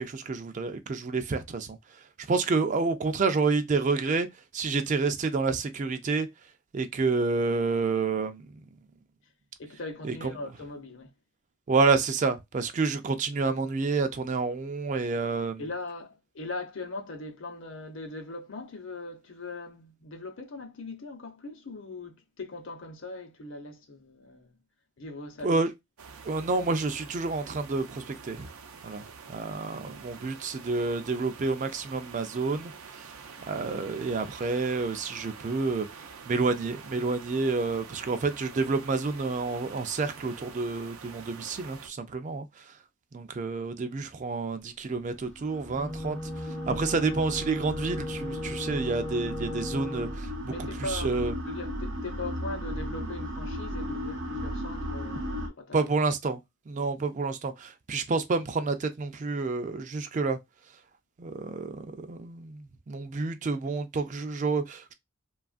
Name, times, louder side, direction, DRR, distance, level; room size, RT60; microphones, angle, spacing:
voice 1, 0.0-1.8 2.3-4.3 4.5-6.3 6.7-8.5 10.0-10.3 11.7-15.6 25.4-25.7 26.2-28.5 28.8-32.7 33.0-33.1 33.5-42.7 43.1-50.5 50.9-51.3 55.7-56.4 56.7-60.4 61.2-64.9, right 4 dB, 35° right, 0.3 m, -29 dB
voice 2, 9.6-11.1 15.6-24.6 25.0-25.6 33.3-33.5 50.5-55.9 56.8-56.9, left 2 dB, 60° left, 0.7 m, -40 dB
sound 1, 26.0-41.9, right 5 dB, 85° right, 0.5 m, -47 dB
sound 2, 45.1-55.5, equal, 55° right, 0.8 m, -36 dB
Wind instrument woodwind instrument, 45.7-50.2, left 2 dB, 30° left, 0.4 m, -37 dB
2.9 x 2.3 x 2.4 m
head